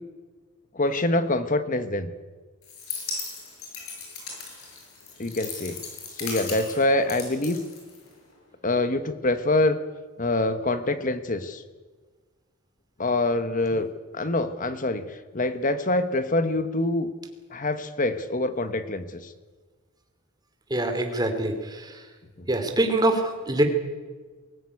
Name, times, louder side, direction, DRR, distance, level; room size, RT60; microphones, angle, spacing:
voice 1, 0.7-2.1 5.2-5.8 6.1-7.6 8.6-9.8 10.2-11.6 13.0-13.9 14.1-17.1 17.5-19.3 22.4-22.5, left 2 dB, 40° left, 10 dB, 1.3 m, -25 dB
sound 1, 2.6-8.3, left 4 dB, 85° left, 7.3 m, -37 dB
voice 2, 20.7-22.1 22.5-23.6, right 1 dB, 20° right, 5 dB, 2.9 m, -24 dB
23.0 x 16.5 x 9.8 m, 1.4 s
head